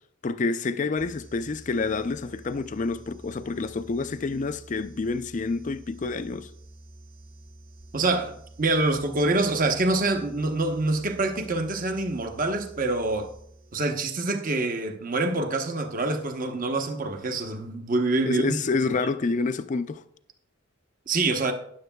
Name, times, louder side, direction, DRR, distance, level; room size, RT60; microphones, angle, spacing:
voice 1, 0.2-6.5 18.2-20.0, left 4 dB, 40° left, 0.4 m, -28 dB
sound 1, 1.0-14.1, right 1 dB, 75° right, 3.3 m, -49 dB
voice 2, 7.9-13.3 13.7-18.6 21.1-21.5, right 2 dB, 45° right, 0.9 m, -26 dB
13.0 x 10.0 x 2.3 m
head